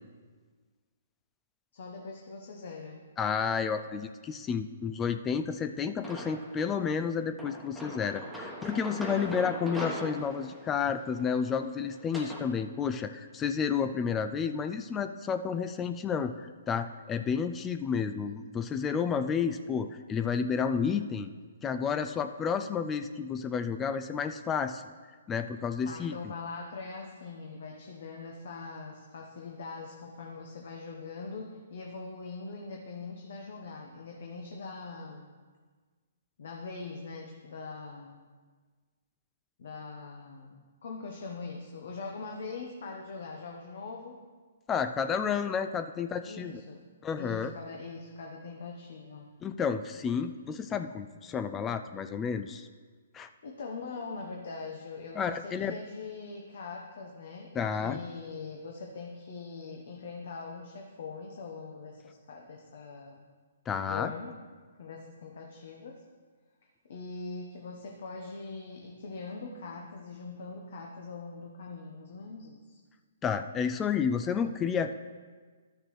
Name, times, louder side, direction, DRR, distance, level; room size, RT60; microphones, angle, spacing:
voice 1, 1.7-3.0 25.9-35.3 36.4-38.2 39.6-44.2 46.2-46.9 47.1-49.3 53.4-63.2 63.9-64.3 64.8-66.0 66.9-72.8, left 4 dB, 60° left, 1 dB, 0.9 m, -42 dB
voice 2, 3.2-21.3 21.6-24.8 25.3-26.3 44.7-46.6 47.0-47.5 49.4-52.7 53.1-53.3 55.1-55.8 57.5-58.0 63.7-64.1 73.2-74.9, left 6 dB, 20° left, 9 dB, 0.3 m, -31 dB
sound 1, 6.0-6.7 7.4-12.5, equal, ahead, 1.2 m, -41 dB
12.5 x 6.5 x 3.2 m, 1.5 s
hypercardioid pair, 135°, 0 cm